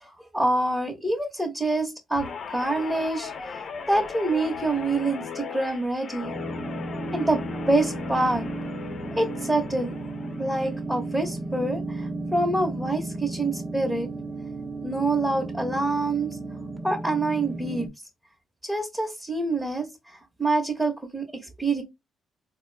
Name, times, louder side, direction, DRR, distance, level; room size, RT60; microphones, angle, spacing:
voice 1, 0.0-3.3 3.9-6.3 7.1-7.4 7.7-8.5 9.1-10.0 10.4-14.1 14.8-16.4 16.8-17.9 18.6-21.8, right 2 dB, 5° right, 1.1 m, -26 dB
Guitar, 2.2-10.7 11.1-11.5, left 6 dB, 55° left, 0.7 m, -37 dB
sound 1, 6.2-17.9, right 2 dB, 30° right, 1.0 m, -34 dB
4.2 x 2.3 x 3.2 m
cardioid pair, 90°, 0 cm